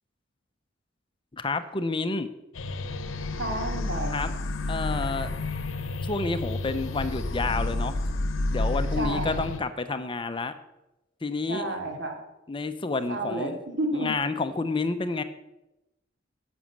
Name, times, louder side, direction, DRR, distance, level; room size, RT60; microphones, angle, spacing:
voice 1, 1.3-2.3 4.1-4.3 4.7-5.4 6.0-8.0 8.5-10.6 11.2-11.8 12.5-13.6 13.9-15.2, left 3 dB, 25° left, 10 dB, 0.6 m, -29 dB
sound 1, 2.5-9.6, left 2 dB, 85° left, 0.8 m, -30 dB
voice 2, 3.4-4.2 8.9-9.4 11.5-12.2 13.1-14.1, right 1 dB, 65° right, 2 dB, 2.5 m, -31 dB
11.0 x 6.2 x 7.5 m, 0.94 s
head